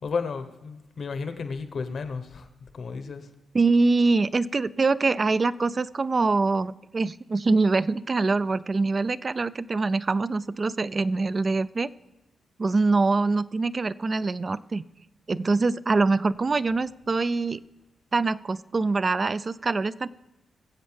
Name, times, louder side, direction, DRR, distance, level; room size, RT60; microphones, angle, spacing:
voice 1, 0.0-3.3, left 5 dB, 65° left, 9 dB, 1.1 m, -33 dB
voice 2, 3.5-11.9 12.6-14.8 15.3-17.6 18.1-20.1, right 3 dB, 40° right, 17 dB, 0.4 m, -24 dB
21.5 x 7.8 x 3.4 m, 1.0 s
cardioid pair, 75°, 0 cm